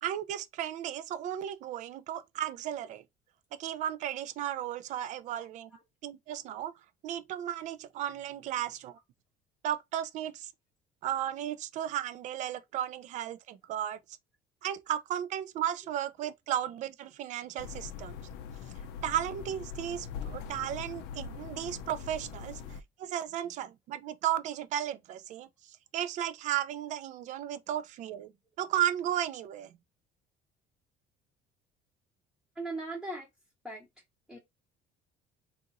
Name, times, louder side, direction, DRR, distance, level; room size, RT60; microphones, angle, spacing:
voice 1, 0.0-3.0 3.5-5.7 6.0-6.7 7.0-9.0 9.6-10.5 11.0-14.0 14.6-18.2 19.0-28.3 28.6-29.8, right 11 dB, 45° right, 0.4 m, -34 dB
sound 1, 17.6-22.8, left 6 dB, 85° left, 0.5 m, -42 dB
voice 2, 32.6-33.3 33.6-33.9 34.3-34.4, right 2 dB, ahead, 0.7 m, -38 dB
2.8 x 2.5 x 3.9 m
cardioid pair, 165°, 17 cm